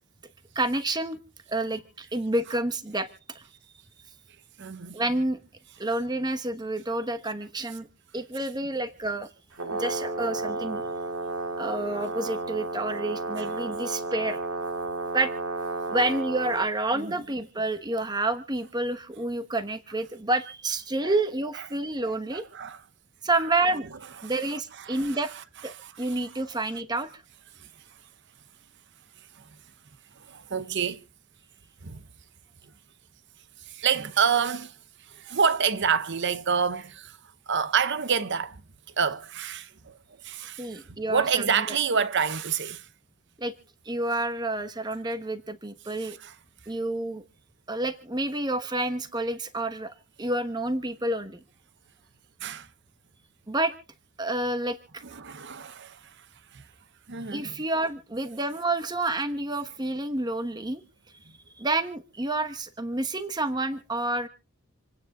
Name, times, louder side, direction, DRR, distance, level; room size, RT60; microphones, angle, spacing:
voice 1, 0.5-1.2 1.5-3.4 4.9-5.4 5.8-7.9 8.1-9.3 9.7-10.8 11.6-14.4 15.1-15.3 15.9-22.5 23.2-23.9 24.2-25.3 25.6-27.1 40.6-41.6 43.4-43.5 43.8-46.2 46.7-47.2 47.7-51.4 53.5-53.7 54.2-55.0 57.3-60.8 61.6-64.3, right 2 dB, 20° right, 1.1 m, -29 dB
voice 2, 4.6-5.0 13.4-13.5 16.9-17.2 21.0-21.1 22.3-22.8 23.3-23.4 23.7-23.8 24.2-24.3 24.8-25.2 25.8-26.2 27.6-27.7 29.4-29.5 30.2-31.0 31.8-32.0 33.7-34.8 35.1-37.2 37.5-38.6 39.0-39.9 40.2-40.8 41.1-42.9 46.0-46.3 52.4-52.7 55.0-56.3 56.5-56.6 57.1-57.5, right 6 dB, 55° right, 0.8 m, -28 dB
Brass instrument, 9.5-16.7, right 2 dB, 80° right, 2.4 m, -32 dB
27.5 x 9.6 x 3.7 m
head